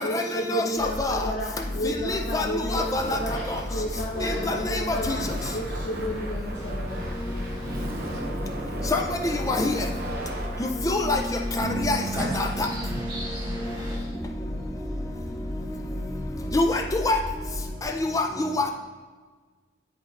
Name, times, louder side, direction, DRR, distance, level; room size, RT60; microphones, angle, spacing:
voice 1, 0.0-5.3 5.5-7.6 13.1-14.1, equal, 45° left, -5 dB, 0.8 m, -33 dB
sound 1, 0.8-17.8, left 1 dB, 75° left, 1.2 m, -35 dB
voice 2, 0.8-1.1 2.3-2.5 2.7-3.0 8.9-9.0 9.5-9.7 10.6-11.2 11.6-11.7 16.5-17.2 18.1-18.2, left 2 dB, 20° left, 3 dB, 0.4 m, -24 dB
Laughter, 2.2-12.7, right 2 dB, 55° right, 0.7 m, -38 dB
voice 3, 4.1-5.2 6.5-8.9 9.5-10.6 11.4-14.0, equal, 25° right, -7 dB, 1.7 m, -37 dB
Bass guitar, 11.6-15.4, right 3 dB, 80° right, 1.5 m, -38 dB
8.8 x 5.2 x 2.5 m, 1.4 s
head